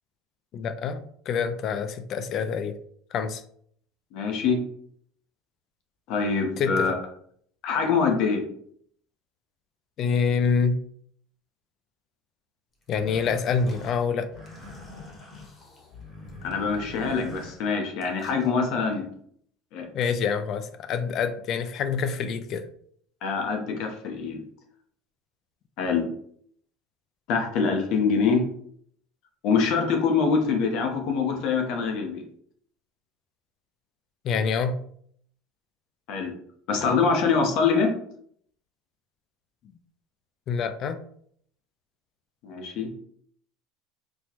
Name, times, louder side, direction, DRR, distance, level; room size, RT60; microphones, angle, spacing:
voice 1, 0.5-2.8 3.1-3.4 6.6-6.9 10.0-10.8 12.9-14.3 19.9-22.7 34.2-34.8 40.5-41.0, left 6 dB, 45° left, 10 dB, 0.4 m, -26 dB
voice 2, 4.1-4.6 6.1-6.9 7.6-8.5 16.4-19.1 19.7-19.9 23.2-24.4 25.8-26.1 27.3-28.4 29.4-32.2 36.1-36.3 36.7-37.9 42.4-42.9, left 5 dB, 60° left, 3 dB, 0.9 m, -24 dB
sound 1, 12.8-18.5, left 2 dB, 30° left, 1.1 m, -44 dB
4.3 x 2.2 x 2.9 m, 0.63 s
supercardioid pair, 130°, 0 cm